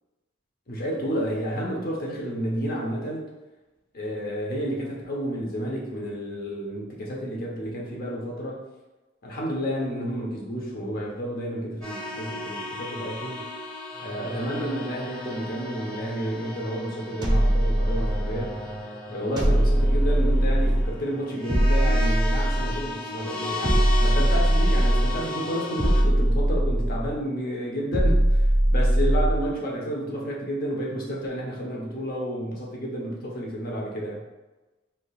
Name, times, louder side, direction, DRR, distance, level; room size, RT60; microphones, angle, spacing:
voice 1, 0.7-3.3 3.9-8.6 9.2-13.5 14.0-18.6 19.1-34.2, equal, 50° left, -2 dB, 0.7 m, -31 dB
sound 1, 11.8-26.0, left 1 dB, 5° left, 0.9 m, -35 dB
sound 2, 17.2-18.5 19.4-21.0 21.5-22.9 23.6-25.3 25.8-27.2 27.9-29.5, right 1 dB, 20° right, 0.5 m, -21 dB
3.4 x 2.8 x 2.3 m, 1.1 s
head